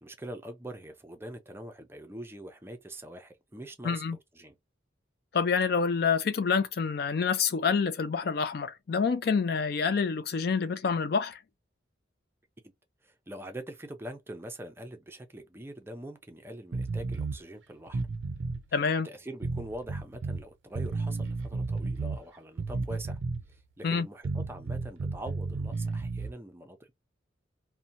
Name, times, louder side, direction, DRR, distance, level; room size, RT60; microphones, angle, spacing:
voice 1, 0.0-4.0 4.3-4.6 13.0-18.0 19.0-23.2 23.5-26.9, right 1 dB, 10° right, 0.4 m, -43 dB
voice 2, 3.8-4.2 5.3-11.4 18.7-19.1 23.8-24.1, left 5 dB, 55° left, 0.4 m, -27 dB
sound 1, 16.7-17.4 17.9-18.6 19.4-20.4 20.7-22.2 22.6-23.5 24.2-26.3, right 3 dB, 75° right, 0.4 m, -33 dB
2.7 x 2.1 x 2.5 m
head